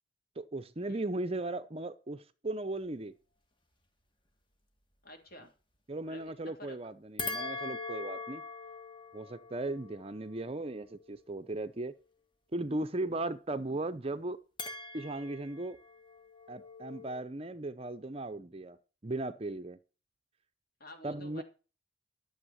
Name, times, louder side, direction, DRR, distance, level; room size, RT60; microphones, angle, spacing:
voice 1, 0.4-3.1 5.9-8.4 9.1-11.9 12.5-14.4 14.9-15.8 16.5-18.8 19.0-19.8 21.0-21.4, right 2 dB, 30° right, 0.6 m, -37 dB
voice 2, 5.0-5.5 6.0-6.8 20.8-21.4, left 1 dB, 50° left, 2.9 m, -50 dB
sound 1, 7.2-11.7 14.6-17.1, left 3 dB, 25° left, 1.7 m, -42 dB
12.0 x 7.2 x 6.3 m
head